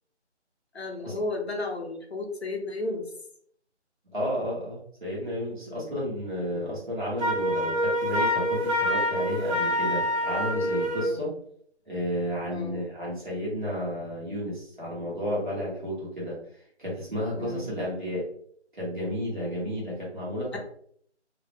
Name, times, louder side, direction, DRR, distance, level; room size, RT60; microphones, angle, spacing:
voice 1, 0.7-3.0 5.7-6.0 6.5-6.8 11.0-11.3 12.5-12.8 17.4-17.7 20.5-20.6, left 2 dB, 65° left, 2 dB, 0.6 m, -34 dB
voice 2, 4.1-11.4 11.9-16.4 16.8-18.3 18.7-20.6, equal, 45° right, -6 dB, 1.1 m, -32 dB
Wind instrument woodwind instrument, 7.2-11.1, left 1 dB, 75° right, 1.1 m, -26 dB
2.5 x 2.1 x 2.8 m, 0.64 s
figure-of-eight pair, 175°, 35 cm